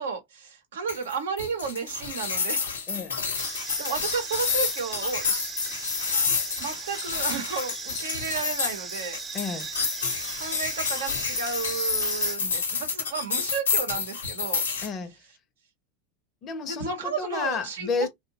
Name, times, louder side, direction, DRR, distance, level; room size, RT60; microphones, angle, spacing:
voice 1, 0.0-2.6 3.5-5.5 6.6-9.2 10.4-14.6 16.7-18.1, right 5 dB, 80° right, 0.8 m, -33 dB
sound 1, 0.9-14.9, left 5 dB, 90° left, 0.7 m, -29 dB
voice 2, 2.9-3.2 9.3-9.7 14.8-15.1 16.4-18.1, left 5 dB, 40° left, 0.6 m, -31 dB
sound 2, 3.4-12.4, right 6 dB, 30° right, 0.5 m, -38 dB
2.7 x 2.1 x 2.7 m
hypercardioid pair, 95°, 0 cm